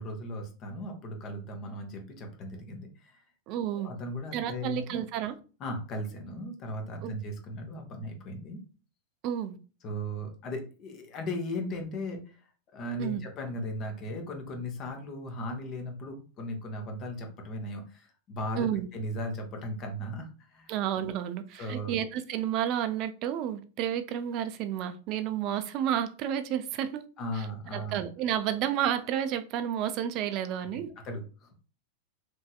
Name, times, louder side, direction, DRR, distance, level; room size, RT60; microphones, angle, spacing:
voice 1, 0.0-3.2 3.7-5.0 5.6-8.6 9.8-12.5 12.7-20.7 21.6-22.0 27.2-28.0 31.0-31.5, equal, 35° left, 0.8 m, -37 dB
voice 2, 3.5-3.9 4.3-5.4 7.0-7.1 9.2-9.6 13.0-13.2 18.6-18.9 20.7-27.0 27.4-27.5 27.7-30.9, right 10 dB, 40° right, 0.3 m, -31 dB
3.0 x 2.7 x 2.2 m
figure-of-eight pair, 90°, 0 cm